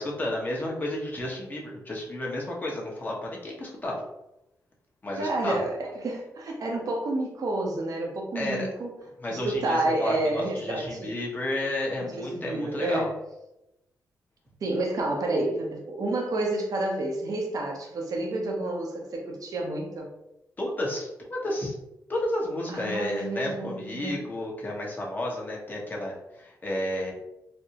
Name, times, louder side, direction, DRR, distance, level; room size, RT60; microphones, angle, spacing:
voice 1, 0.0-4.0 5.0-5.6 8.3-8.7 9.2-13.1 20.6-21.8 22.1-27.1, left 1 dB, 30° left, -3 dB, 1.0 m, -32 dB
voice 2, 5.1-8.9 9.3-11.1 12.2-13.1 14.6-20.1 22.7-24.2, right 2 dB, 65° right, 0 dB, 0.7 m, -29 dB
4.2 x 2.0 x 2.8 m, 0.90 s
cardioid pair, 85°, 7 cm